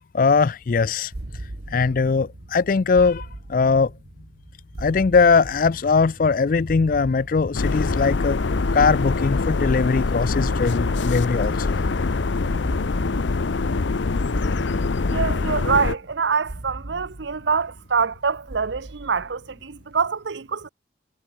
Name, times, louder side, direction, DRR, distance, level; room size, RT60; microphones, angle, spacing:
voice 1, 0.1-1.1 1.7-3.9 4.8-8.4 8.7-11.8, left 4 dB, 50° left, 0.4 m, -20 dB
sound 1, 1.1-20.0, right 1 dB, 60° right, 1.2 m, -40 dB
sound 2, 7.5-15.9, left 3 dB, 80° left, 0.7 m, -24 dB
voice 2, 15.1-20.7, right 5 dB, 75° right, 0.7 m, -25 dB
head